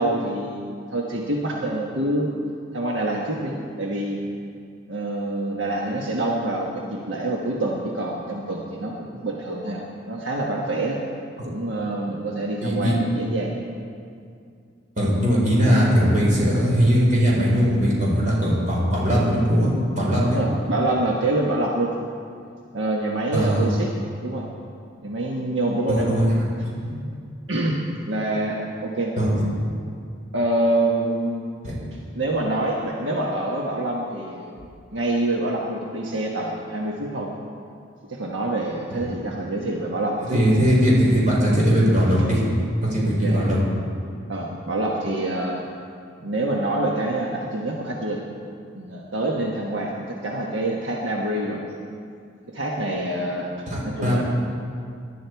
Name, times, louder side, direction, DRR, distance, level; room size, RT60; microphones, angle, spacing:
voice 1, 0.0-2.3 2.7-4.2 4.9-11.0 11.4-13.5 20.3-21.9 22.7-23.9 24.2-24.5 25.0-26.1 27.5-29.1 30.3-31.4 32.1-34.6 34.9-37.3 38.1-40.4 43.2-43.4 44.3-45.6 46.2-48.2 48.7-51.6 52.5-53.5 53.8-54.2, right 1 dB, 80° right, -1 dB, 1.3 m, -26 dB
voice 2, 12.6-12.9 15.0-20.4 23.3-23.7 25.9-26.5 26.8-26.9 29.2-29.3 31.6-31.7 40.3-42.4 42.8-43.6 53.7-54.2, equal, 40° right, -5 dB, 4.6 m, -20 dB
19.0 x 11.5 x 4.7 m, 2.4 s
head